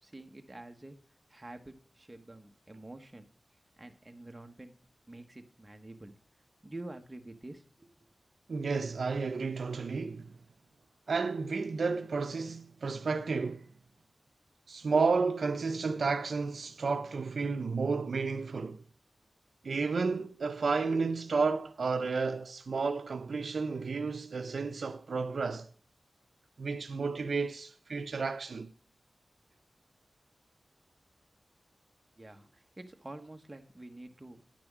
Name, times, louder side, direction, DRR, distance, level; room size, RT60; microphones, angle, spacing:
voice 1, 0.0-1.0 1.3-3.3 3.8-4.7 5.1-6.1 6.6-8.1 32.2-34.4, right 2 dB, 20° right, 1.2 m, -48 dB
voice 2, 8.5-10.4 11.1-13.7 14.7-18.8 19.6-25.7 26.6-28.7, right 4 dB, 80° right, 0.6 m, -32 dB
9.9 x 6.1 x 6.0 m
wide cardioid pair, 95°, 0 cm